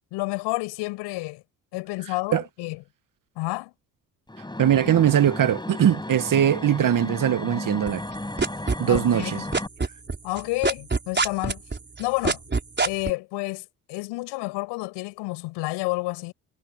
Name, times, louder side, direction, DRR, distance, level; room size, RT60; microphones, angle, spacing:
voice 1, 0.1-1.4 1.7-2.8 3.4-3.7 8.9-9.4 10.2-11.6 12.0-12.4 12.8-16.3, left 22 dB, 75° left, 7.4 m, -30 dB
sound 1, 4.3-9.7, left 1 dB, 10° left, 6.3 m, -34 dB
voice 2, 4.6-8.0 8.8-9.4, right 10 dB, 50° right, 2.0 m, -21 dB
sound 2, 7.9-9.3 9.5-13.1, right 4 dB, 25° right, 4.9 m, -24 dB
hypercardioid pair, 60°, 42 cm